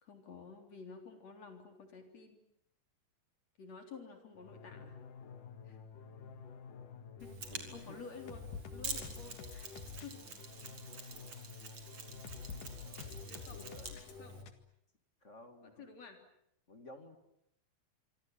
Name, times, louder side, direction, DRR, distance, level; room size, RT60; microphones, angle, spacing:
voice 1, 0.0-2.4 3.6-5.0 5.6-5.8 7.2-9.7 10.0-10.2 13.3-14.5 15.6-16.2, left 5 dB, 50° left, 6 dB, 4.7 m, -52 dB
sound 1, 4.4-14.5, left 5 dB, 70° left, 3.4 m, -49 dB
Mechanisms, 7.2-14.4, right 5 dB, 45° right, 4.1 m, -48 dB
voice 2, 7.5-8.0 12.8-13.9 15.2-15.9 16.7-17.2, left 2 dB, 25° left, 8 dB, 1.9 m, -54 dB
26.0 x 25.0 x 8.9 m, 0.75 s
omnidirectional pair, 4.0 m